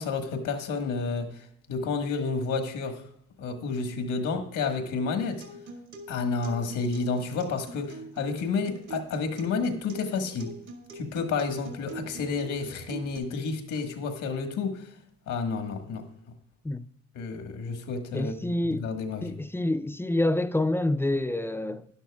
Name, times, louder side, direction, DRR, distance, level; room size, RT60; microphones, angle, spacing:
voice 1, 0.0-3.0 3.4-5.4 6.1-10.5 10.9-14.9 15.3-16.1 17.1-19.3, left 4 dB, 80° left, 1.5 m, -30 dB
Acoustic guitar, 5.2-13.2, right 3 dB, 70° right, 2.1 m, -44 dB
voice 2, 18.1-18.9 19.2-21.9, left 1 dB, 10° left, 0.4 m, -27 dB
12.0 x 11.0 x 2.3 m
cardioid pair, 90°, 30 cm